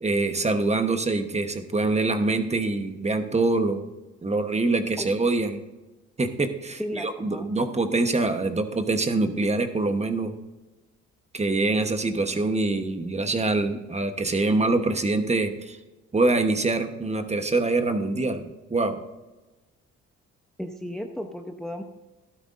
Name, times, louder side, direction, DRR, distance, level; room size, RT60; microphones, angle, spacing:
voice 1, 0.0-3.8 4.2-5.6 6.2-10.3 11.3-15.8 16.1-19.0, right 3 dB, 20° right, 7 dB, 1.1 m, -25 dB
voice 2, 6.8-7.5 20.6-21.8, equal, ahead, 5 dB, 0.8 m, -34 dB
13.0 x 11.5 x 2.6 m, 1.1 s
cardioid pair, 90°, 30 cm